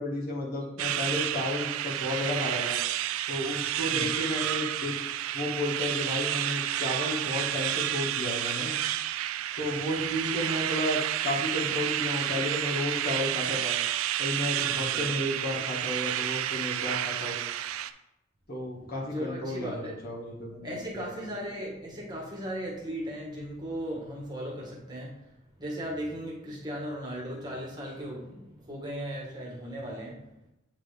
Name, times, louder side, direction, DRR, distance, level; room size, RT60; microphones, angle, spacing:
voice 1, 0.0-2.8 3.3-5.0 5.3-8.7 9.6-13.8 14.2-17.4 18.5-21.1, left 1 dB, 50° left, -3 dB, 1.4 m, -32 dB
sound 1, 0.8-17.9, right 12 dB, 80° right, 0.3 m, -30 dB
voice 2, 14.6-15.1 19.1-19.9 20.6-25.2 25.6-30.3, equal, 20° right, -3 dB, 1.4 m, -37 dB
8.2 x 3.7 x 3.3 m, 0.89 s
head